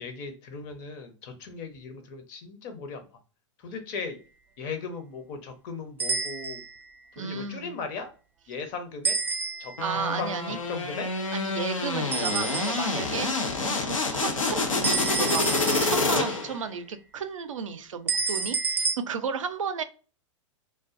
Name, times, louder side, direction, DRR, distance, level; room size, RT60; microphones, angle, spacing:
voice 1, 0.0-3.0 3.6-4.2 4.6-6.6 7.2-8.1 8.5-9.2 9.6-11.1, left 5 dB, 45° left, 7 dB, 0.8 m, -37 dB
sound 1, 6.0-6.8 9.0-9.9 12.1-13.0 14.8-16.3 18.1-19.0, right 4 dB, 10° right, 0.3 m, -29 dB
voice 2, 7.2-7.7 9.8-10.6 11.3-13.4 13.6-15.5 15.8-19.8, right 6 dB, 80° right, 9 dB, 0.4 m, -33 dB
sound 2, 9.8-16.6, left 3 dB, 90° left, 0.6 m, -27 dB
2.5 x 2.2 x 2.4 m, 0.36 s
figure-of-eight pair, 100°, 16 cm